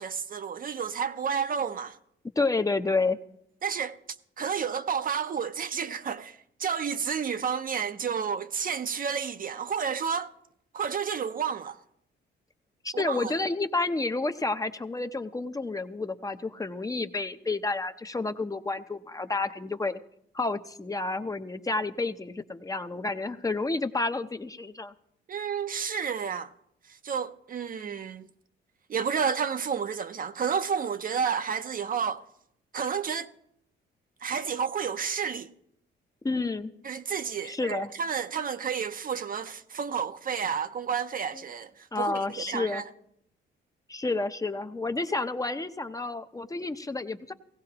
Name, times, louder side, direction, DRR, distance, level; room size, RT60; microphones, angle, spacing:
voice 1, 0.0-2.0 3.6-4.0 4.4-10.3 10.7-11.8 12.9-13.3 25.3-26.5 26.9-28.3 28.9-32.2 32.7-33.3 34.2-35.5 36.8-42.9, right 7 dB, 45° right, 0.6 m, -31 dB
voice 2, 2.4-3.2 12.8-20.0 20.3-24.9 36.2-36.7 37.4-37.9 41.3-41.4 41.9-42.8 43.9-47.3, left 3 dB, 15° left, 0.7 m, -30 dB
17.5 x 16.0 x 2.9 m
cardioid pair, 90°, 20 cm